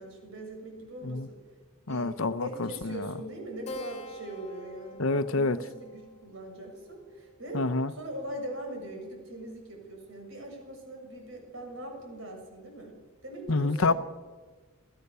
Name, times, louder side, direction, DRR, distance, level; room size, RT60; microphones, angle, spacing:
voice 1, 0.0-1.4 1.9-7.6 7.9-13.0 13.2-14.0, right 1 dB, 65° right, 7.3 m, -41 dB
voice 2, 1.9-3.1 5.0-5.6 7.5-7.9 13.5-13.9, left 3 dB, 65° left, 0.9 m, -27 dB
Keyboard (musical), 3.7-8.6, left 2 dB, 30° left, 1.7 m, -47 dB
27.5 x 16.5 x 6.9 m
head